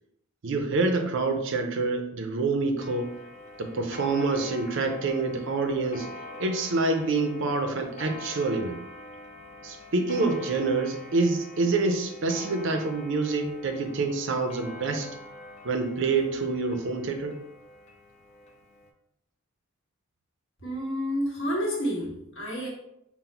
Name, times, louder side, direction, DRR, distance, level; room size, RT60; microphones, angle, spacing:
voice 1, 0.4-3.1 3.6-6.1 6.4-8.8 9.6-15.1 15.6-17.3, right 3 dB, 55° right, 5 dB, 0.5 m, -27 dB
Clock, 2.8-18.9, left 1 dB, 30° left, 0.4 m, -44 dB
voice 2, 20.6-22.7, equal, 55° left, -4 dB, 1.3 m, -29 dB
3.9 x 2.1 x 4.2 m, 0.81 s
head